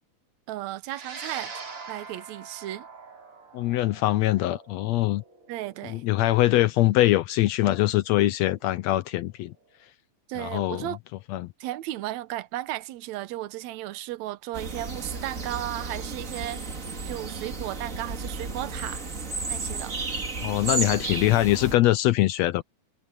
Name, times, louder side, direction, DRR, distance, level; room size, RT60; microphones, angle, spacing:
voice 1, 0.5-1.5 1.9-2.9 5.5-6.0 10.3-11.0 11.6-19.0 19.5-20.0, right 15 dB, 75° right, 2.1 m, -35 dB
sound 1, 0.9-9.4, right 4 dB, 45° right, 4.3 m, -44 dB
voice 2, 3.5-5.2 5.9-9.5 10.4-10.9 11.3-11.5 20.4-22.6, left 16 dB, 75° left, 1.7 m, -23 dB
sound 2, 14.5-21.7, right 3 dB, 30° right, 2.2 m, -33 dB
omnidirectional pair, 3.4 m